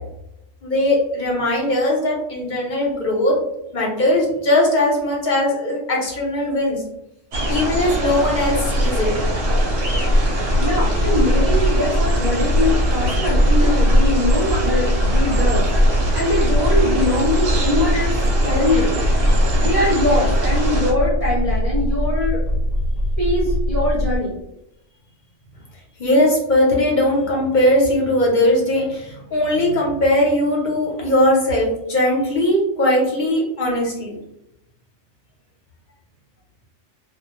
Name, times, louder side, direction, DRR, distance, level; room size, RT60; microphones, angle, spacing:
voice 1, 0.6-3.4 3.7-6.8 7.5-9.1 26.0-34.2, left 1 dB, 50° left, -3 dB, 0.7 m, -19 dB
sound 1, 7.3-20.9, equal, 85° right, 0.9 m, -20 dB
sound 2, 10.5-24.2, left 1 dB, 85° left, 0.9 m, -23 dB
voice 2, 10.6-15.7 16.1-18.2 18.4-22.4 23.2-24.3, left 1 dB, 50° right, -6 dB, 0.4 m, -22 dB
2.2 x 2.0 x 2.9 m, 0.86 s
omnidirectional pair, 1.3 m